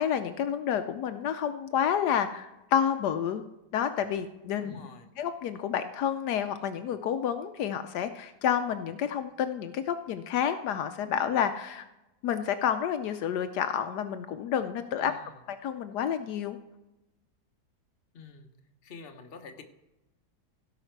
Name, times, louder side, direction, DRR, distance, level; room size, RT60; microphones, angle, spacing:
voice 1, 0.0-3.4 3.7-4.9 5.2-11.9 12.2-15.1 15.5-16.6, left 8 dB, 75° left, 9 dB, 1.1 m, -29 dB
voice 2, 4.6-5.1 15.0-15.3 18.1-18.5 18.8-19.6, left 4 dB, 40° left, 4 dB, 1.1 m, -47 dB
16.5 x 5.8 x 4.5 m, 0.96 s
omnidirectional pair, 1.8 m